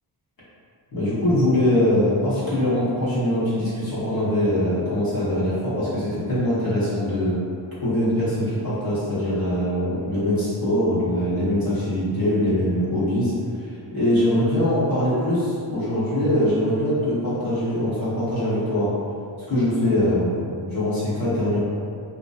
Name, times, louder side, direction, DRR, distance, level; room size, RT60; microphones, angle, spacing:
voice 1, 0.9-7.4 7.8-13.3 13.6-18.9 19.5-21.6, left 1 dB, 50° left, -11 dB, 0.9 m, -22 dB
2.6 x 2.1 x 2.3 m, 2.4 s
wide cardioid pair, 125°, 46 cm